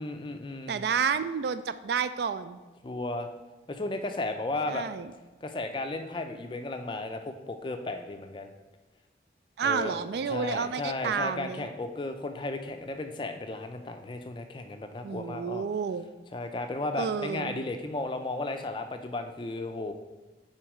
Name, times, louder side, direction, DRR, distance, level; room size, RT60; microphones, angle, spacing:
voice 1, 0.0-0.8 2.8-3.3 3.7-4.9 5.4-8.5 9.6-10.0 10.3-15.6 16.3-19.9, left 2 dB, 25° left, 6 dB, 0.4 m, -34 dB
voice 2, 0.7-2.6 4.7-5.1 9.6-11.6 15.0-16.1 17.0-17.6, right 6 dB, 65° right, 12 dB, 0.3 m, -30 dB
6.0 x 4.4 x 4.9 m, 1.2 s
head